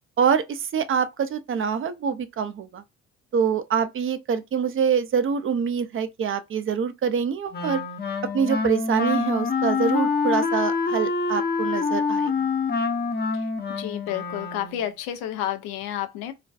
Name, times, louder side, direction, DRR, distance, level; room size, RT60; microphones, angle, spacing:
voice 1, 0.2-2.8 3.3-7.8 8.3-12.5, right 7 dB, 35° right, 0.5 m, -25 dB
Wind instrument woodwind instrument, 7.5-14.9, left 4 dB, 25° left, 0.6 m, -26 dB
voice 2, 13.8-16.3, left 11 dB, 75° left, 0.5 m, -30 dB
2.5 x 2.2 x 2.3 m
hypercardioid pair, 50°, 36 cm